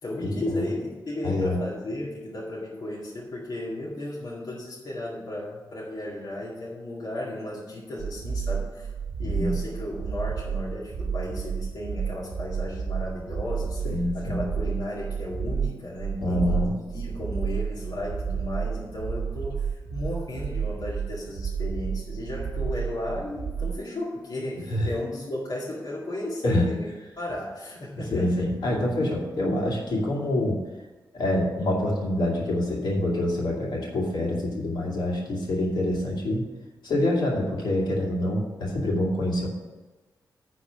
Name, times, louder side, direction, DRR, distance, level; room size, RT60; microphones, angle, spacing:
voice 1, 0.0-8.9 9.2-16.5 16.9-28.5, left 1 dB, 60° left, -6 dB, 2.1 m, -34 dB
voice 2, 1.2-1.6 9.2-9.5 13.8-14.4 16.2-16.7 24.7-24.9 26.4-26.7 28.1-30.6 31.1-36.4 36.8-39.5, left 1 dB, 80° left, -3 dB, 2.6 m, -26 dB
sound 1, 8.0-23.8, right 6 dB, 80° right, 0.8 m, -31 dB
10.5 x 4.2 x 7.6 m, 1.2 s
wide cardioid pair, 150°, 8 cm